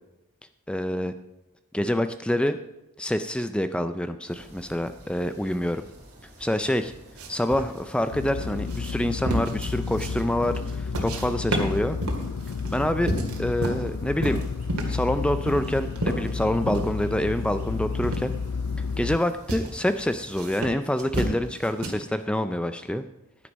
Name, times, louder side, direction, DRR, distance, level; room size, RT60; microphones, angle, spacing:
voice 1, 0.7-1.1 1.7-2.6 3.0-5.8 6.4-6.9 7.3-12.0 12.7-13.1 13.4-14.4 14.9-18.3 19.0-23.0, left 1 dB, 5° left, 10 dB, 0.4 m, -26 dB
sound 1, 4.3-20.5, right 1 dB, 35° right, 3.1 m, -50 dB
sound 2, 7.2-11.3 11.5-13.9 14.2-15.0 15.5-16.9 17.3-17.4 18.0-18.3 18.8-19.1 19.5-19.8 20.3-21.9, right 1 dB, 85° right, 2.1 m, -30 dB
sound 3, 8.1-19.2, left 5 dB, 85° left, 0.4 m, -31 dB
11.0 x 9.7 x 5.2 m, 0.95 s
head